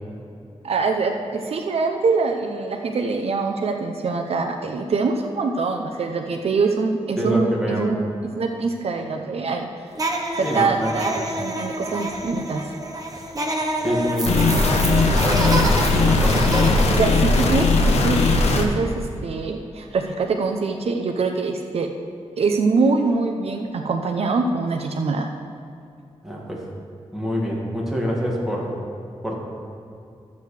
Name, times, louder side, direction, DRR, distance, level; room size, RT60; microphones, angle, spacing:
voice 1, 0.6-8.1 8.4-9.7 10.4-12.8 17.0-18.2 18.5-21.9 22.4-25.3, right 4 dB, 65° right, 4 dB, 0.6 m, -24 dB
voice 2, 7.2-7.8 10.4-11.0 13.8-14.7 15.2-16.8 26.2-26.7 27.1-28.7 29.2-29.4, equal, 5° right, -4 dB, 2.1 m, -26 dB
sound 1, 10.0-16.9, right 1 dB, 35° right, 1.1 m, -28 dB
sound 2, 14.3-18.7, left 3 dB, 80° left, 1.0 m, -18 dB
13.5 x 8.1 x 3.3 m, 2.5 s
wide cardioid pair, 105°, 11 cm